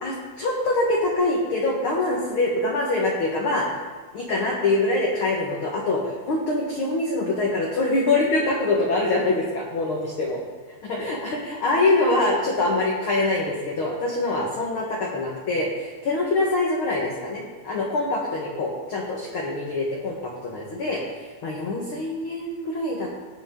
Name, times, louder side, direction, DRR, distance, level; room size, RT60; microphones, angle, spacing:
voice 1, 0.0-3.7 4.1-10.4 10.8-23.1, left 2 dB, 55° left, -3 dB, 1.6 m, -24 dB
17.5 x 8.1 x 3.7 m, 1.4 s
omnidirectional pair, 4.0 m